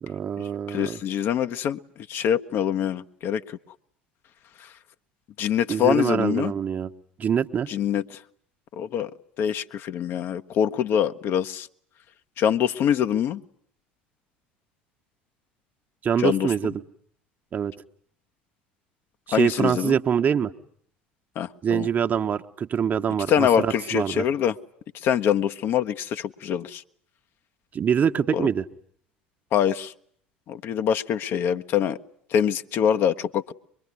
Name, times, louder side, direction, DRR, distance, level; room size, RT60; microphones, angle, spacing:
voice 1, 0.0-1.0 5.7-6.9 7.2-7.7 16.0-16.8 17.5-17.7 19.3-20.5 21.6-24.3 27.7-28.6, right 8 dB, 30° right, 7 dB, 1.2 m, -24 dB
voice 2, 0.7-1.8 2.1-3.6 5.4-6.5 7.7-8.0 8.8-9.1 9.4-11.7 12.4-13.4 16.2-16.5 19.3-20.0 21.4-21.9 23.3-24.5 25.0-26.8 28.3-28.5 29.5-29.9 30.5-32.0 32.3-33.5, left 9 dB, 45° left, 9 dB, 1.0 m, -24 dB
24.0 x 22.5 x 9.7 m, 0.65 s
figure-of-eight pair, 65°, 5 cm